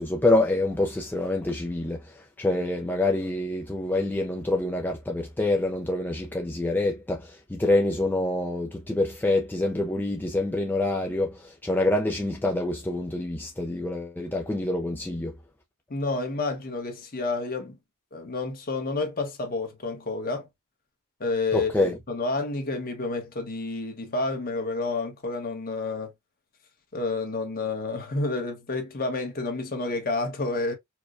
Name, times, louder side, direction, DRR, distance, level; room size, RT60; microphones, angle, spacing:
voice 1, 0.0-15.4 21.5-22.0, left 2 dB, 10° left, 0.3 m, -26 dB
voice 2, 15.9-17.8 18.1-20.5 21.2-26.1 26.9-30.7, left 3 dB, 40° left, 1.0 m, -29 dB
4.5 x 2.1 x 2.4 m
head